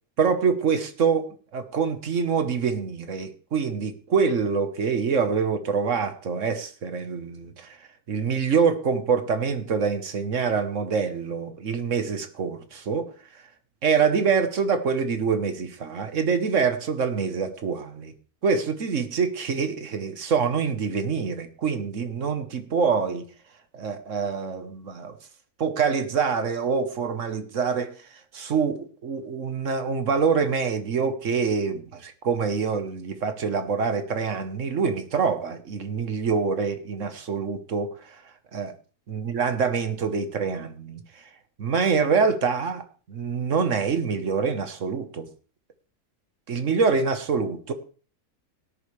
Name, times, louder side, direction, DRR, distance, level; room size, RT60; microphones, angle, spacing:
voice 1, 0.2-7.8 8.1-13.4 13.8-18.1 18.4-23.2 23.7-25.2 25.6-28.0 28.3-38.2 38.5-38.7 39.1-41.2 41.6-45.3 46.5-47.7, right 5 dB, 55° right, 1.4 m, -25 dB
17.5 x 10.5 x 3.3 m
omnidirectional pair, 1.7 m